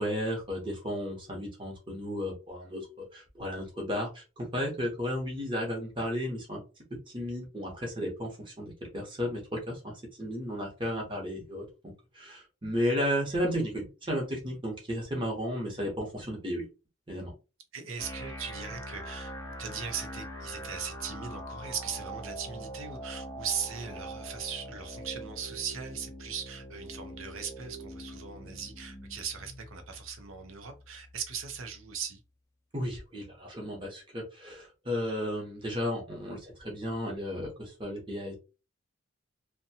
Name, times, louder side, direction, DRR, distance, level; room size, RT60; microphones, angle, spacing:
voice 1, 0.0-6.6 7.1-9.9 10.2-16.6 17.1-17.3 32.7-38.3, equal, 25° right, 0.9 m, -34 dB
voice 2, 17.7-19.3 19.6-32.2, right 7 dB, 80° right, 0.6 m, -39 dB
sound 1, 18.0-32.0, equal, 15° left, 0.5 m, -43 dB
2.6 x 2.2 x 2.7 m
head